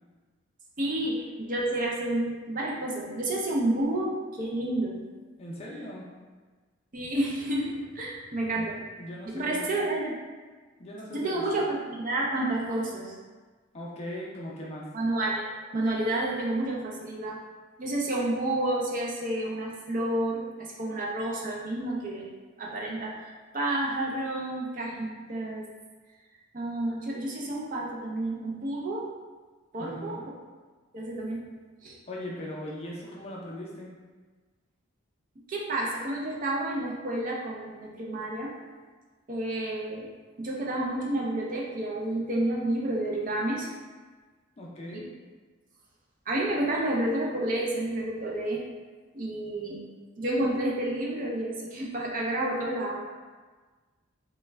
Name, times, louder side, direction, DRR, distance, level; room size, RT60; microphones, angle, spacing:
voice 1, 0.8-5.0 6.9-8.8 9.2-10.1 11.1-13.2 14.9-17.4 17.8-22.3 22.6-23.2 23.5-25.7 26.5-29.1 29.7-30.2 30.9-31.4 31.8-32.0 35.5-38.5 39.3-40.1 40.4-43.7 44.9-45.0 46.3-48.7 49.1-49.8 50.2-53.1, right 1 dB, 40° right, -3 dB, 0.4 m, -30 dB
voice 2, 5.4-6.1 8.5-8.7 9.0-9.7 10.8-11.6 13.7-14.9 29.8-30.3 32.1-33.9 44.6-45.1, left 1 dB, 30° left, -4 dB, 0.5 m, -39 dB
3.1 x 2.2 x 3.2 m, 1.4 s
head